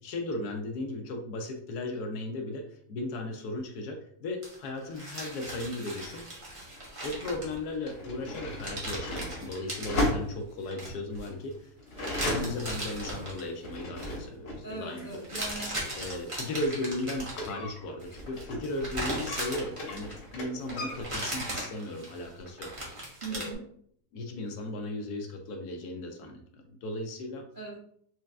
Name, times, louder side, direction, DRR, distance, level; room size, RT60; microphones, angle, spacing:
voice 1, 0.0-6.3 7.0-11.7 12.2-15.4 15.9-22.7 23.3-23.5 24.1-27.4, left 2 dB, 70° left, 4 dB, 1.1 m, -36 dB
sound 1, 4.4-7.9 8.2-8.3 8.6-10.1 10.7-11.3 12.0-13.5 13.8-14.1 15.1-17.5 18.0-20.4 20.7-23.5, right 1 dB, 25° right, 0.9 m, -38 dB
sound 2, 6.7-6.8 7.6-14.7 14.9-18.7 19.1-21.0, left 1 dB, 90° left, 1.8 m, -36 dB
voice 2, 14.6-15.9 23.2-23.7 27.6-27.7, right 3 dB, 90° right, -3 dB, 0.4 m, -40 dB
4.5 x 3.2 x 2.4 m, 0.65 s
omnidirectional pair, 1.9 m